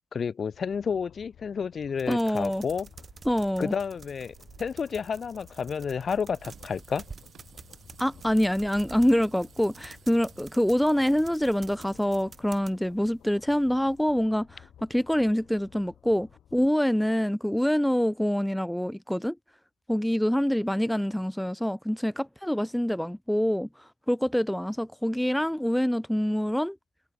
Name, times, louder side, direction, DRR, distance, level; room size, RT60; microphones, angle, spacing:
voice 1, 0.1-2.9 3.6-7.0, left 6 dB, 45° left, 1.3 m, -31 dB
sound 1, 0.5-16.7, left 10 dB, 70° left, 5.2 m, -55 dB
sound 2, 2.0-12.7, right 5 dB, 35° right, 2.3 m, -49 dB
voice 2, 2.1-2.6 3.3-3.7 8.0-19.4 19.9-26.8, equal, 5° left, 0.6 m, -26 dB
sound 3, 6.4-14.2, right 8 dB, 60° right, 4.8 m, -58 dB
cardioid pair, 90°, 0 cm